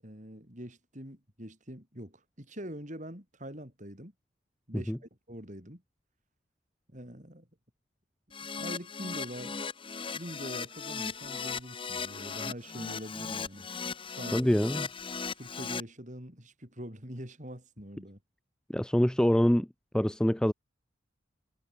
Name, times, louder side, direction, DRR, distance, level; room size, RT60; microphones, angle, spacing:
voice 1, 0.0-4.1 4.7-5.8 6.9-7.5 8.4-9.6 10.1-13.7 14.1-14.5 15.3-18.2, equal, 35° right, 6.6 m, -44 dB
Keyboard (musical), 8.3-15.8, left 5 dB, 25° left, 0.9 m, -37 dB
voice 2, 14.3-14.9 18.7-19.7 19.9-20.5, equal, 5° left, 0.3 m, -25 dB
head